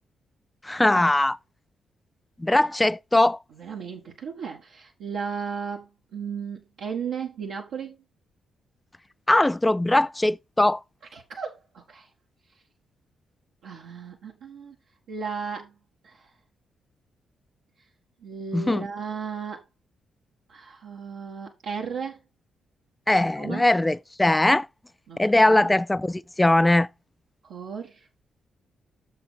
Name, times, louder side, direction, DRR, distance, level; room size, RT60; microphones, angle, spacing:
voice 1, 0.6-1.4 2.4-3.4 9.3-10.8 18.5-18.9 23.1-24.7 25.2-26.9, left 1 dB, 15° left, 0.5 m, -20 dB
voice 2, 3.5-8.0 11.1-12.1 13.6-14.7 15.1-15.7 16.0-16.3 18.2-19.6 20.5-22.2 23.2-23.6 25.1-25.7 27.4-28.1, right 6 dB, 70° right, 1.5 m, -35 dB
7.2 x 5.7 x 4.5 m
hypercardioid pair, 40°, 0 cm